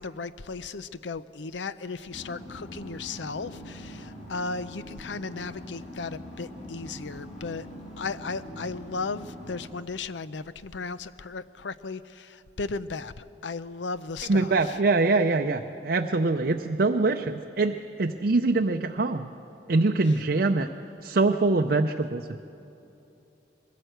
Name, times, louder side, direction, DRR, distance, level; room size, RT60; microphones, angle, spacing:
voice 1, 0.0-7.7 8.0-14.8 20.1-20.2, left 4 dB, 85° left, 15 dB, 0.6 m, -36 dB
sound 1, 2.1-9.7, left 1 dB, 40° left, 2.6 m, -43 dB
voice 2, 14.3-19.3 19.7-20.7 21.0-22.4, right 3 dB, 55° right, 4 dB, 0.6 m, -24 dB
22.0 x 16.0 x 7.9 m, 2.9 s
head